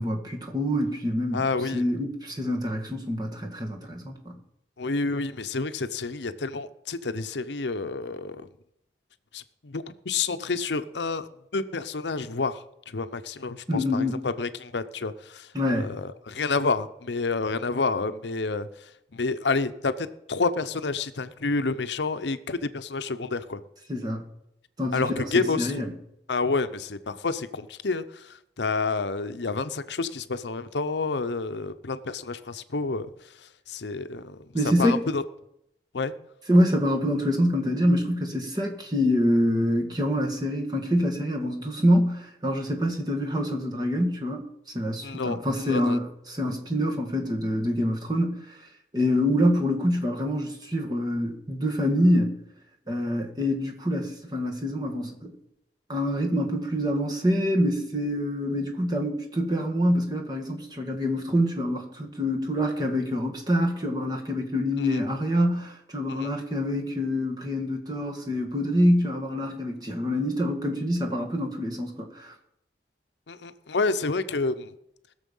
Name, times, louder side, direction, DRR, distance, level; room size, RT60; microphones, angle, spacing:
voice 1, 0.0-1.5 1.7-4.4 13.7-14.2 15.5-15.9 23.9-24.2 24.8-25.3 25.6-25.9 34.5-35.1 36.5-44.4 44.7-48.4 48.9-52.4 52.9-55.3 55.9-72.3, equal, 25° right, 2.0 m, -26 dB
voice 2, 1.3-1.8 4.8-8.5 9.3-11.3 11.5-15.5 15.8-23.6 24.9-25.7 26.3-33.1 33.4-34.5 34.8-35.2 35.9-36.1 45.0-46.0 64.8-65.0 66.1-66.3 73.3-74.7, left 3 dB, 90° left, 0.8 m, -29 dB
20.0 x 7.0 x 5.5 m
head